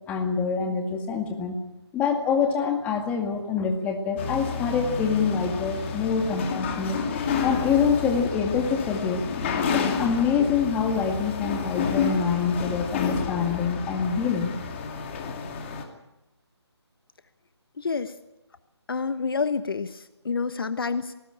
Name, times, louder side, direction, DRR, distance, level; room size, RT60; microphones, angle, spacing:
voice 1, 0.1-1.6 1.9-7.0 7.4-9.3 9.7-14.5, left 6 dB, 10° left, 4 dB, 2.0 m, -25 dB
sound 1, 4.2-15.8, left 6 dB, 25° left, 2.5 m, -30 dB
voice 2, 17.8-18.1 18.9-21.1, left 5 dB, 55° left, 12 dB, 1.2 m, -28 dB
20.0 x 19.0 x 8.8 m, 0.95 s
figure-of-eight pair, 155°, 15 cm